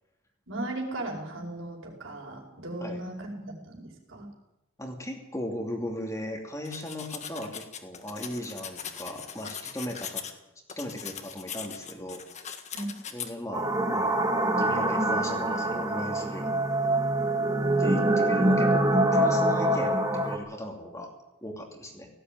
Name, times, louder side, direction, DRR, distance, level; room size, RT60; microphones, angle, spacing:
voice 1, 0.5-4.3 12.7-13.0, right 1 dB, 70° right, 0 dB, 5.0 m, -37 dB
voice 2, 4.8-10.2 10.8-12.2 13.1-14.2 14.6-16.5 17.8-21.1 21.4-22.1, equal, 15° left, 1 dB, 2.7 m, -37 dB
sound 1, 6.7-10.3 10.7-13.3, left 8 dB, 35° left, 1.7 m, -40 dB
sound 2, 13.5-20.4, right 1 dB, 20° right, 2.5 m, -25 dB
18.0 x 16.0 x 9.4 m, 0.94 s
head